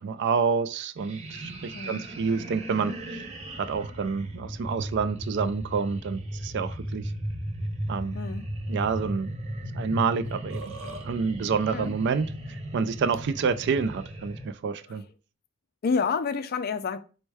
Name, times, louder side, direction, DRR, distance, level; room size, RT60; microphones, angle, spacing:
voice 1, 0.0-3.2 3.6-7.1 7.9-8.2 8.7-9.4 9.7-10.8 11.0-15.0, right 5 dB, 55° right, 0.3 m, -28 dB
sound 1, 1.0-14.5, right 1 dB, 30° right, 0.7 m, -36 dB
voice 2, 1.7-2.0 8.1-8.5 11.7-11.9 15.8-17.0, left 5 dB, 50° left, 0.4 m, -28 dB
Burping eructation, 10.2-11.1, right 3 dB, 80° right, 1.0 m, -40 dB
4.3 x 2.2 x 4.6 m
head